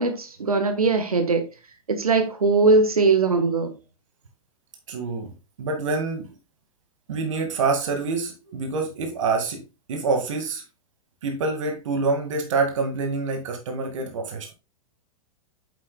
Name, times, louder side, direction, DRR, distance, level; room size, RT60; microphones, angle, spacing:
voice 1, 0.0-1.5 1.9-3.7, right 3 dB, 75° right, 1.3 m, -20 dB
voice 2, 4.9-5.3 5.6-6.3 7.1-10.6 11.2-14.5, right 4 dB, 60° right, 2.1 m, -26 dB
8.7 x 7.6 x 2.3 m
figure-of-eight pair, 100°, 19 cm